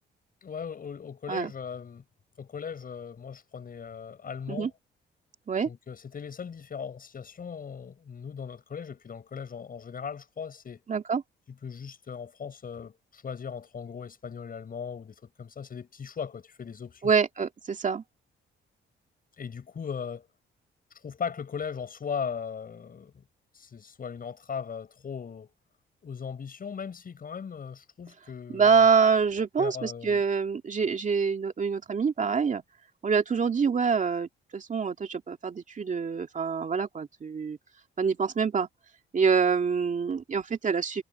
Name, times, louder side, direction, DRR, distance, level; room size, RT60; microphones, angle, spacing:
voice 1, 0.4-2.0 2.4-4.7 5.7-10.8 11.6-17.1 19.4-20.3 21.0-23.2 23.5-25.5 26.0-28.9 29.6-30.2, left 6 dB, 45° left, 7.0 m, -38 dB
voice 2, 10.9-11.2 17.0-18.0 28.5-32.6 33.0-37.6 38.0-38.7 39.1-41.0, right 5 dB, 40° right, 2.4 m, -26 dB
cardioid pair, 90°, 20 cm